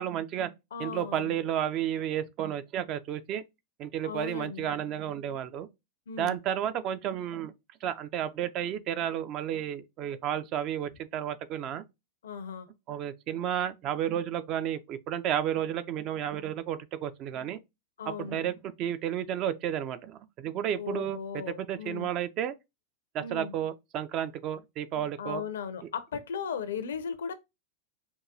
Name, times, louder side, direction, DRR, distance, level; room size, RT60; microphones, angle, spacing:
voice 1, 0.0-0.5 0.8-3.4 3.8-5.7 6.2-7.5 7.8-11.8 12.9-17.6 18.1-22.5 23.1-25.4, right 10 dB, 35° right, 0.3 m, -32 dB
voice 2, 0.7-1.3 4.0-4.8 6.1-6.4 12.2-12.7 18.0-18.6 20.7-22.1 23.2-23.5 25.2-27.3, left 6 dB, 65° left, 0.5 m, -37 dB
4.5 x 2.2 x 2.5 m
figure-of-eight pair, 90°, 0 cm